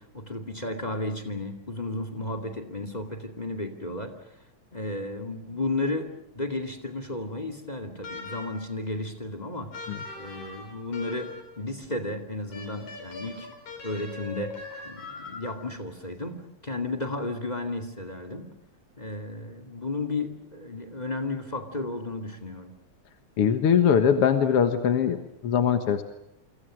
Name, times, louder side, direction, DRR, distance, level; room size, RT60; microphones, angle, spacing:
voice 1, 0.0-4.3 4.7-13.5 13.8-18.5 19.0-22.7, left 2 dB, 15° left, 9 dB, 2.1 m, -33 dB
sound 1, 8.0-8.7 9.7-11.6 12.5-15.7, left 3 dB, 85° left, 6.8 m, -41 dB
voice 2, 23.4-25.2 25.4-26.0, left 7 dB, 55° left, 7 dB, 2.1 m, -21 dB
29.0 x 25.5 x 6.3 m, 0.80 s
omnidirectional pair, 3.4 m